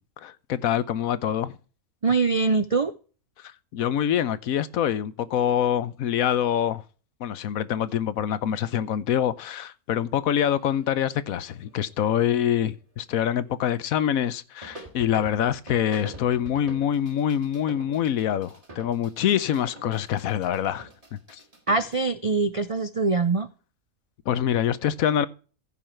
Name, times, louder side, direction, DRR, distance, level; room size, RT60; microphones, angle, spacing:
voice 1, 0.2-1.5 3.7-6.8 7.2-20.9 21.3-21.4 24.3-25.3, left 10 dB, 75° left, 1.2 m, -25 dB
voice 2, 2.0-2.9 21.7-23.5, right 4 dB, 60° right, 0.3 m, -23 dB
sound 1, 10.4-12.3 14.6-22.0, right 1 dB, 25° right, 3.1 m, -45 dB
15.0 x 5.6 x 4.4 m
omnidirectional pair, 1.5 m